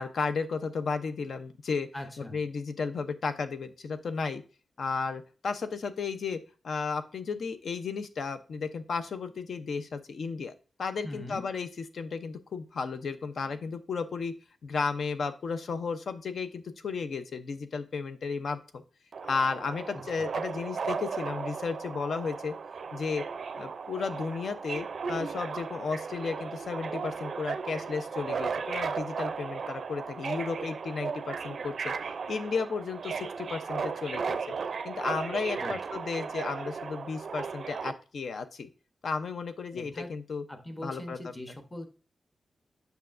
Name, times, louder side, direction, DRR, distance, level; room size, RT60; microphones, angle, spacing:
voice 1, 0.0-1.9 2.2-4.4 4.8-10.5 10.8-11.7 11.9-14.3 14.6-18.8 19.3-22.6 22.9-23.2 23.5-31.9 32.3-34.5 34.8-38.7 39.0-40.4 40.8-41.2, left 5 dB, 60° left, 9 dB, 0.6 m, -33 dB
voice 2, 1.9-2.4 11.0-11.4 19.9-20.2 35.6-35.8 39.7-40.1 40.5-41.9, left 1 dB, 15° left, 6 dB, 0.8 m, -41 dB
Subway metro underground, 19.1-37.9, right 5 dB, 55° right, 0.4 m, -36 dB
8.0 x 5.7 x 2.5 m, 0.36 s
wide cardioid pair, 170°, 0 cm